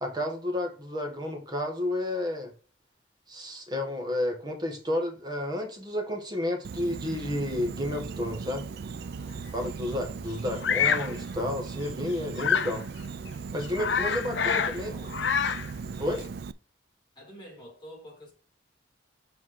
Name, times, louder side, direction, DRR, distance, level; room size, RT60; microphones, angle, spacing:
voice 1, 0.0-2.5 3.3-8.7 9.5-12.8 13.5-14.9 16.0-16.2, left 1 dB, 25° right, 1.6 m, -31 dB
Insect, 6.6-16.5, right 5 dB, 60° right, 0.4 m, -38 dB
voice 2, 8.9-10.7 14.0-15.2 17.1-18.3, equal, 25° left, 3.0 m, -49 dB
Bird vocalization bird call bird song, 10.6-11.1 12.4-12.8 13.3-13.4 13.6-14.8 15.0-15.7, left 7 dB, 70° left, 0.6 m, -26 dB
7.8 x 3.6 x 4.8 m
head